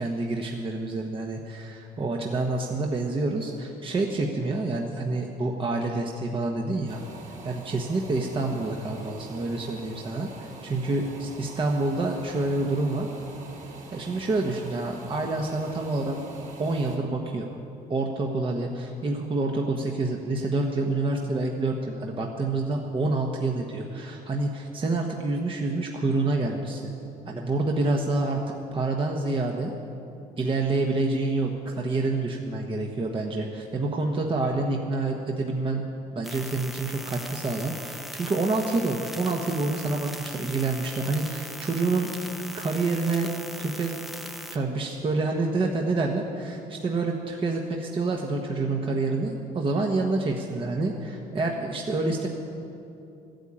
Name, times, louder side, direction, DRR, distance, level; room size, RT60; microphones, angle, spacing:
voice 1, 0.0-7.0 7.4-13.1 13.9-16.2 16.6-17.5 17.9-26.9 27.3-29.7 30.4-35.8 36.1-42.1 42.5-43.3 43.6-43.9 44.5-52.3, right 3 dB, 30° right, 1 dB, 1.2 m, -27 dB
sound 1, 6.9-17.0, right 3 dB, 45° right, 2.5 m, -45 dB
sound 2, 36.2-44.6, equal, ahead, 0.8 m, -40 dB
14.0 x 9.1 x 8.8 m, 2.8 s
cardioid pair, 110°, 17 cm